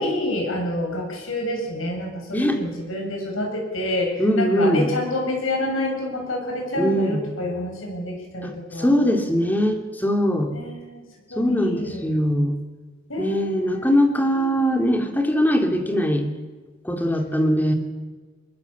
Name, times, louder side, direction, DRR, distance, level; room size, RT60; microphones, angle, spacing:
voice 1, 0.0-8.9 10.5-11.0 11.3-12.1 13.1-14.0 14.3-14.6, left 1 dB, 90° left, 1 dB, 7.6 m, -28 dB
voice 2, 4.2-4.9 6.8-7.2 8.4-10.5 11.4-12.6 13.2-16.2 16.8-17.7, equal, 10° left, 5 dB, 2.5 m, -21 dB
22.5 x 21.0 x 7.2 m, 1.3 s
head